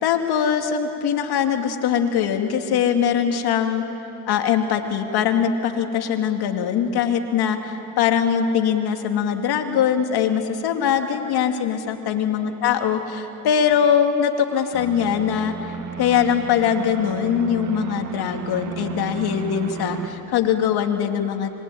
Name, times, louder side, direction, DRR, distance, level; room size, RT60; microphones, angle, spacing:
voice 1, 0.0-3.8 4.3-21.5, left 8 dB, 65° left, 5 dB, 2.6 m, -22 dB
sound 1, 14.7-20.1, right 6 dB, 45° right, 2.2 m, -33 dB
25.5 x 22.5 x 9.2 m, 3.0 s
supercardioid pair, 70°, 42 cm